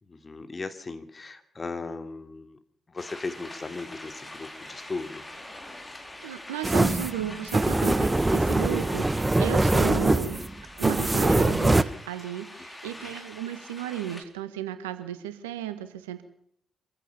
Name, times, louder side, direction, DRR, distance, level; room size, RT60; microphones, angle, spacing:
voice 1, 0.0-2.6 2.9-5.2 13.0-13.2, left 3 dB, 35° left, 9 dB, 2.8 m, -37 dB
sound 1, 3.0-14.2, left 1 dB, 20° left, 3.9 m, -43 dB
voice 2, 6.2-10.5 10.7-16.2, right 11 dB, 85° right, 11 dB, 1.6 m, -35 dB
sound 2, 6.6-11.8, right 2 dB, 20° right, 1.2 m, -23 dB
25.5 x 15.0 x 7.1 m, 0.68 s
hypercardioid pair, 40°, 0 cm